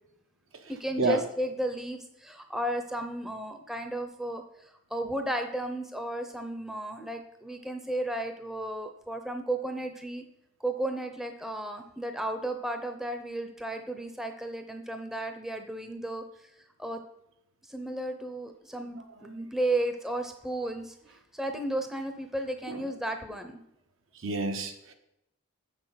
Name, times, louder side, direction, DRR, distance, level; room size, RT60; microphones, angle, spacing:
voice 1, 0.6-10.2 10.6-16.5 16.8-17.0 17.7-20.9 21.3-23.6, right 1 dB, ahead, 6 dB, 0.6 m, -34 dB
voice 2, 24.1-24.9, right 3 dB, 75° right, 6 dB, 1.1 m, -29 dB
7.1 x 6.5 x 5.7 m, 0.82 s
head